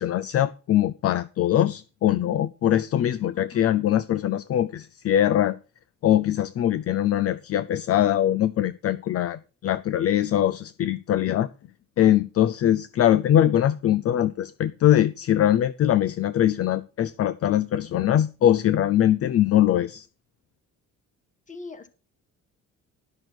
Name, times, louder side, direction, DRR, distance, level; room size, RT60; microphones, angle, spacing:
voice 1, 0.0-5.6 6.0-11.5 12.0-20.1, left 11 dB, 50° left, 0.5 m, -22 dB
voice 2, 3.3-3.7 21.5-21.9, left 3 dB, 25° left, 1.4 m, -41 dB
12.0 x 6.3 x 6.1 m
cardioid pair, 150°, 31 cm